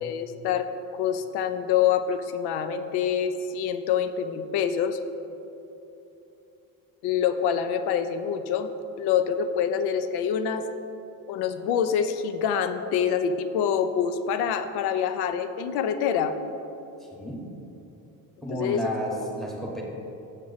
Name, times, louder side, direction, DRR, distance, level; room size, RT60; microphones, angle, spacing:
voice 1, 0.0-5.0 7.0-8.7 9.0-10.6 11.3-16.4 18.5-18.8, left 8 dB, 80° left, 10 dB, 0.6 m, -26 dB
voice 2, 18.4-19.8, equal, ahead, -2 dB, 1.0 m, -31 dB
7.3 x 6.4 x 4.0 m, 2.9 s
cardioid pair, 140°, 38 cm